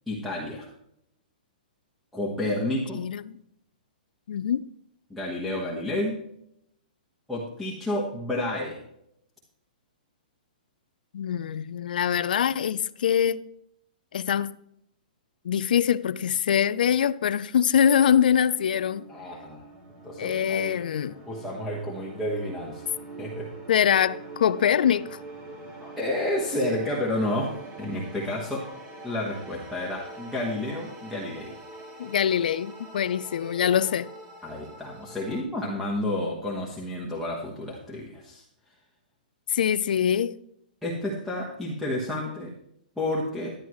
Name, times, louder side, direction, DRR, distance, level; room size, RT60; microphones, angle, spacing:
voice 1, 0.1-0.7 2.1-3.0 5.1-6.2 7.3-8.8 19.1-19.6 20.0-20.8 21.3-22.9 23.2-23.5 25.8-28.7 29.0-31.5 34.4-38.4 40.8-42.5 43.0-43.5, left 1 dB, ahead, 1.4 m, -30 dB
voice 2, 2.9-3.4 4.3-4.7 11.1-13.4 14.1-14.5 15.4-19.0 20.2-21.2 23.7-25.2 32.0-34.1 39.5-40.4, left 8 dB, 70° left, 0.5 m, -24 dB
sound 1, 17.1-35.4, right 2 dB, 30° right, 2.6 m, -44 dB
11.5 x 11.0 x 3.1 m
hypercardioid pair, 155°, 5 cm